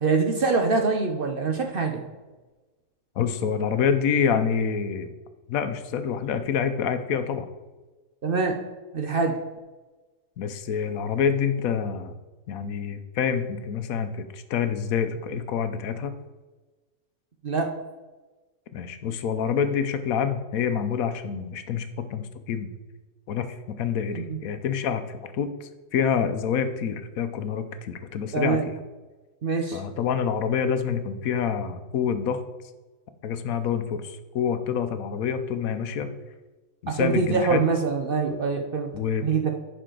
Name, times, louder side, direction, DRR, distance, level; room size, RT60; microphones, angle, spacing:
voice 1, 0.0-2.0 8.2-8.6 8.9-9.4 17.4-17.7 24.1-24.4 28.3-28.6 29.4-29.8 36.9-38.9 39.2-39.5, right 4 dB, 50° right, 3 dB, 0.8 m, -24 dB
voice 2, 3.2-5.1 5.5-7.5 10.4-12.1 12.5-16.2 18.7-22.7 23.3-28.7 29.7-32.4 33.2-36.1 36.8-37.6 38.9-39.3, left 7 dB, 80° left, 10 dB, 1.1 m, -27 dB
11.0 x 5.0 x 3.8 m, 1.2 s
omnidirectional pair, 1.5 m